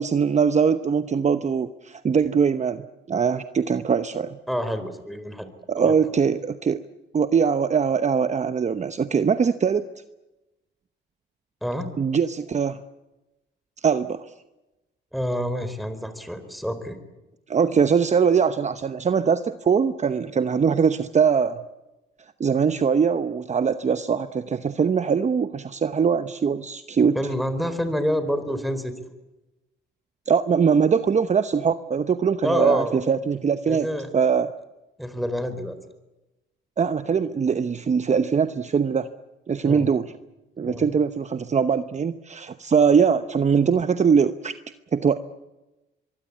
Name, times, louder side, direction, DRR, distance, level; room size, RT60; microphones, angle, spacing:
voice 1, 0.0-4.4 5.7-6.8 7.1-9.9 12.0-12.8 13.8-14.3 17.5-21.6 22.4-27.2 30.3-33.9 34.1-34.5 36.8-39.1 39.5-40.1 40.6-44.5 44.9-45.2, right 6 dB, 35° right, 11 dB, 0.9 m, -22 dB
voice 2, 4.5-5.5 5.8-6.0 11.6-11.9 15.1-17.0 27.1-28.9 32.4-33.0 33.7-34.1 35.0-35.8 39.6-39.9 40.6-40.9, equal, ahead, 10 dB, 4.2 m, -27 dB
23.5 x 23.5 x 8.6 m, 1.0 s
cardioid pair, 90°, 20 cm